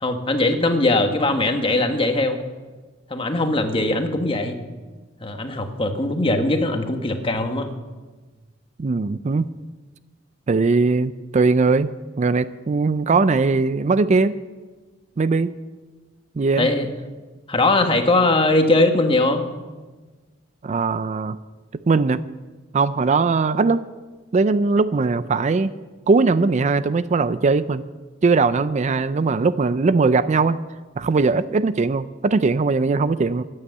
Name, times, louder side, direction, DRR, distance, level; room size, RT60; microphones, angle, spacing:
voice 1, 0.0-2.4 3.1-4.6 5.2-7.7 16.6-16.9 17.5-19.4, left 2 dB, 30° left, 6 dB, 1.4 m, -20 dB
voice 2, 8.8-9.5 10.5-11.9 12.2-14.4 15.2-15.5 16.4-16.7 20.6-21.4 21.9-22.2 22.7-23.9 24.3-25.7 26.1-27.9 28.2-30.6 31.0-33.4, right 4 dB, 40° right, 14 dB, 0.4 m, -20 dB
14.0 x 10.0 x 7.9 m, 1.3 s
head